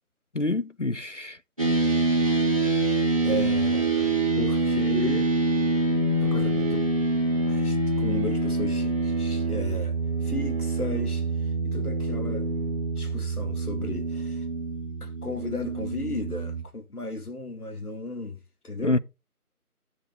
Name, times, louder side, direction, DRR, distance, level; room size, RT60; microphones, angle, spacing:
voice 1, 0.3-1.4 18.8-19.0, left 2 dB, 55° left, 0.6 m, -26 dB
sound 1, 1.6-16.6, right 2 dB, 20° right, 1.8 m, -25 dB
voice 2, 2.7-5.3 6.2-6.9 7.5-12.5 13.0-14.5 15.0-19.0, left 2 dB, 75° left, 2.2 m, -35 dB
14.5 x 7.1 x 3.5 m
figure-of-eight pair, 175°, 45 cm